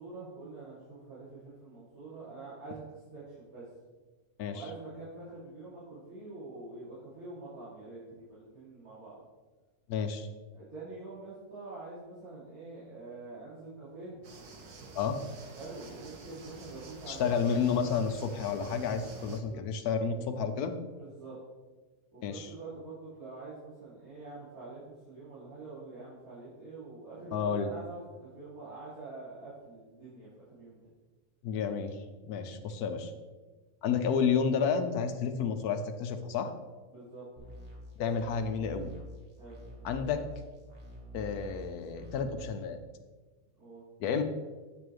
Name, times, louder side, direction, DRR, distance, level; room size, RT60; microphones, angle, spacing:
voice 1, 0.0-3.7 4.5-9.2 10.5-14.2 15.5-18.0 19.5-19.6 21.0-21.4 22.1-30.8 36.9-37.2 39.4-39.6 43.6-43.8, right 3 dB, 65° right, -12 dB, 3.1 m, -46 dB
voice 2, 9.9-10.3 14.9-15.2 17.1-20.7 22.2-22.5 27.3-27.7 31.4-32.0 32.3-33.1 33.8-36.5 38.0-38.9 39.8-40.2 41.1-42.8 44.0-44.2, left 6 dB, 80° left, 7 dB, 1.2 m, -31 dB
sound 1, 14.2-19.4, right 3 dB, 85° right, 1.5 m, -49 dB
sound 2, 37.4-42.4, equal, 40° right, 1.8 m, -47 dB
8.7 x 7.8 x 3.1 m, 1.3 s
omnidirectional pair, 1.6 m